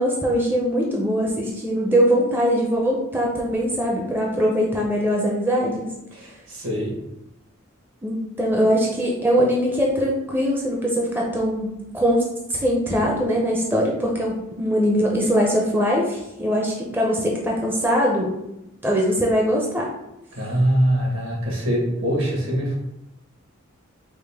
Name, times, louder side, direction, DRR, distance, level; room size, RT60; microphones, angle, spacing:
voice 1, 0.0-5.9 8.0-12.2 12.5-18.4 18.8-19.9, equal, 10° right, -2 dB, 0.4 m, -21 dB
voice 2, 6.1-6.9 20.3-22.7, equal, 65° right, -2 dB, 1.2 m, -23 dB
5.0 x 2.1 x 3.4 m, 0.89 s
head